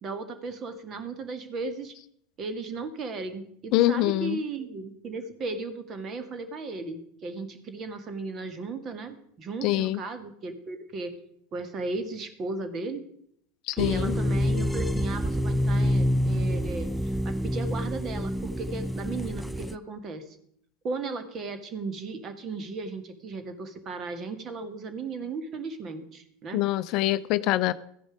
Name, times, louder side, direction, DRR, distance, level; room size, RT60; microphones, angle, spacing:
voice 1, 0.0-1.9 2.4-11.1 11.5-13.0 13.8-20.4 20.8-26.6, right 3 dB, 35° right, 9 dB, 2.0 m, -36 dB
voice 2, 3.7-4.4 9.6-10.0 13.7-14.2 26.5-27.7, left 16 dB, 50° left, 15 dB, 0.6 m, -24 dB
sound 1, 13.8-19.8, equal, ahead, 0.5 m, -27 dB
14.5 x 10.5 x 5.0 m, 0.68 s
figure-of-eight pair, 80°, 0 cm